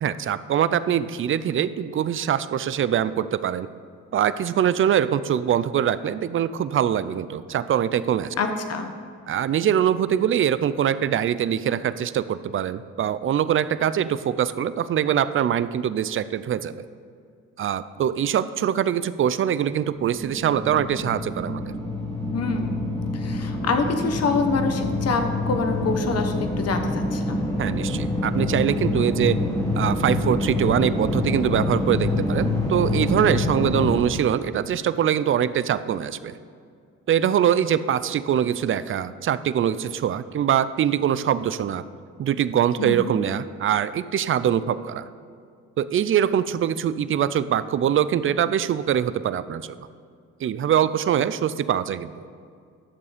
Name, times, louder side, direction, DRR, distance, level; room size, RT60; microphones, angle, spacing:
voice 1, 0.0-3.7 4.1-8.3 9.3-16.8 17.6-21.7 27.6-29.4 29.8-36.4 37.1-41.8 42.2-45.1 45.8-49.9 50.4-52.3, right 9 dB, 45° right, 15 dB, 0.5 m, -23 dB
voice 2, 8.4-8.9 22.3-22.8 23.1-27.4 42.8-43.1, left 4 dB, 55° left, 6 dB, 1.2 m, -26 dB
sound 1, 20.0-34.0, left 2 dB, 10° left, 1.7 m, -26 dB
11.5 x 7.0 x 5.0 m, 2.3 s
cardioid pair, 90°, 30 cm